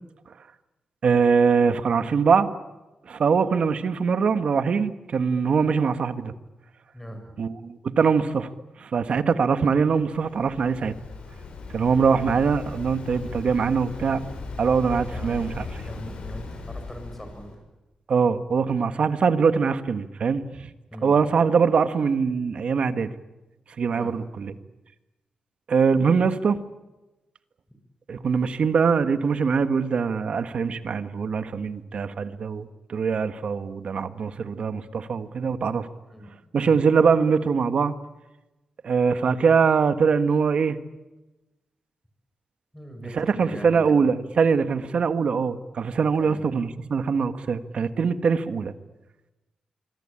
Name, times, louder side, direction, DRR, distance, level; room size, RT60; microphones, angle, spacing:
voice 1, 1.0-2.5 3.1-6.3 7.4-8.5 8.8-10.9 11.7-14.2 14.6-15.6 18.1-20.7 21.0-23.1 23.8-24.5 25.7-26.6 28.1-35.9 36.5-37.9 38.8-40.8 43.1-48.7, right 5 dB, 60° right, 10 dB, 1.6 m, -22 dB
voice 2, 6.9-7.4 15.0-15.5 15.9-17.6 20.9-21.1 23.9-24.2 36.1-36.3 36.6-36.8 42.7-44.1 46.2-46.4, equal, 5° left, 5 dB, 7.5 m, -40 dB
Waves surf, 9.9-17.5, left 3 dB, 65° left, 7.2 m, -37 dB
25.5 x 24.0 x 8.8 m, 1.1 s
cardioid pair, 95°, 2 cm